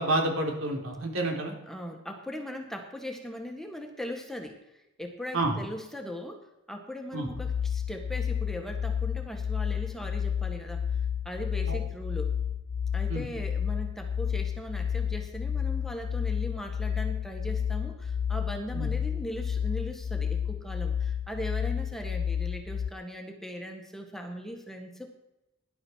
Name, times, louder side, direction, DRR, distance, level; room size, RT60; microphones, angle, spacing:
voice 1, 0.0-1.5 5.3-5.5 7.1-7.3 11.7-11.8 13.1-13.2 18.7-18.9, right 2 dB, 80° right, 1 dB, 3.7 m, -29 dB
voice 2, 1.7-4.6 5.0-10.8 11.3-12.3 12.9-25.1, equal, ahead, 3 dB, 1.7 m, -39 dB
sound 1, 7.3-22.9, left 8 dB, 70° left, 0.4 m, -31 dB
18.0 x 11.0 x 4.7 m, 0.94 s
head